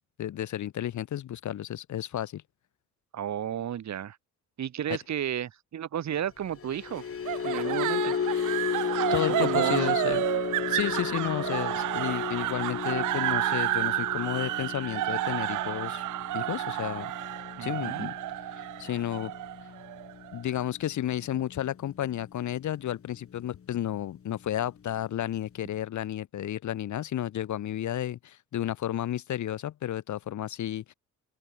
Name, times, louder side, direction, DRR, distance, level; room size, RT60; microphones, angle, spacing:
voice 1, 0.2-2.4 4.9-5.0 9.1-10.2 10.7-16.0 16.3-17.1 17.6-18.1 18.8-19.3 20.3-30.9, left 11 dB, 70° left, 4.3 m, -32 dB
voice 2, 3.1-4.2 4.6-7.0 7.4-8.1 9.3-9.9 17.6-18.1, right 10 dB, 65° right, 5.5 m, -33 dB
sound 1, 6.4-22.8 23.2-23.5 23.8-24.0, left 7 dB, 50° left, 6.3 m, -35 dB
sound 2, 7.3-20.4, right 16 dB, 85° right, 1.1 m, -31 dB
open air
cardioid pair, 90°, 30 cm